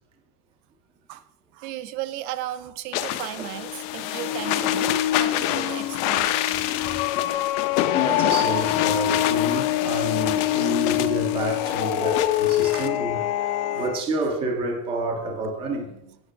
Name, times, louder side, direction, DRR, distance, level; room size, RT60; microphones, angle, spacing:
voice 1, 1.5-4.9 5.2-6.4 6.6-7.4 8.1-8.2 9.6-9.7 13.7-13.8, right 13 dB, 80° right, 0.8 m, -36 dB
sound 1, 2.9-12.9, left 12 dB, 50° left, 0.6 m, -28 dB
sound 2, 3.5-14.0, left 13 dB, 90° left, 0.7 m, -25 dB
voice 2, 6.5-7.2 7.9-13.2 13.7-15.9, right 2 dB, 10° right, 0.4 m, -29 dB
8.9 x 5.4 x 5.7 m
cardioid pair, 180°, 48 cm